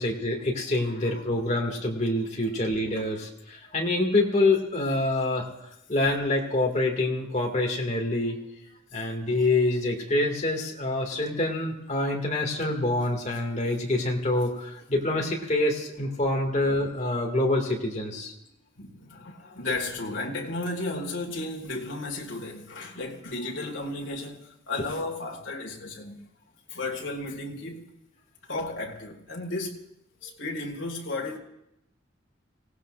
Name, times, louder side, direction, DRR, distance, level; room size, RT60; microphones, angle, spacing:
voice 1, 0.0-5.4 5.9-8.4 8.9-18.3, left 2 dB, 35° left, 2.2 m, -26 dB
voice 2, 18.8-26.3 26.7-27.9 28.5-29.8 30.2-31.4, left 2 dB, 75° left, 2.0 m, -34 dB
26.5 x 17.0 x 2.5 m
head